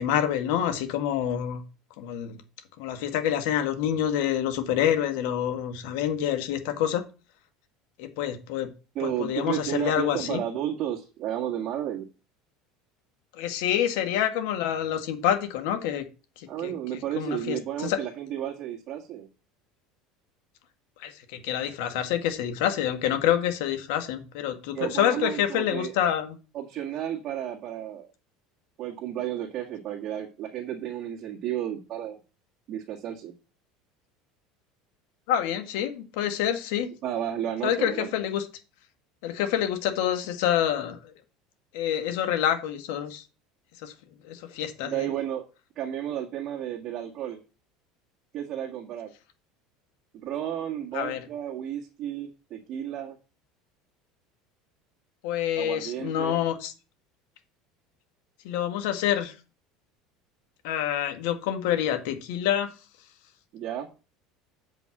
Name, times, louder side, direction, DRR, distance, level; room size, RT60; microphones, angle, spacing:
voice 1, 0.0-1.6 2.0-2.4 2.8-7.0 8.0-8.7 9.0-10.4 13.4-16.0 16.4-18.0 21.0-26.4 35.3-36.9 37.6-38.5 39.2-41.1 41.7-43.2 43.8-43.9 44.2-45.1 50.9-51.2 55.2-56.7 58.4-59.3 60.6-62.7, left 10 dB, 75° left, 8 dB, 1.7 m, -27 dB
voice 2, 8.9-12.0 16.5-19.3 24.7-25.9 26.5-28.1 28.8-32.2 32.7-33.3 37.0-38.1 44.8-45.5 45.7-47.4 48.3-49.1 50.1-53.1 55.5-56.4 63.5-63.9, right 11 dB, 45° right, -2 dB, 1.8 m, -32 dB
7.7 x 5.4 x 6.0 m, 0.32 s
supercardioid pair, 130°, 0 cm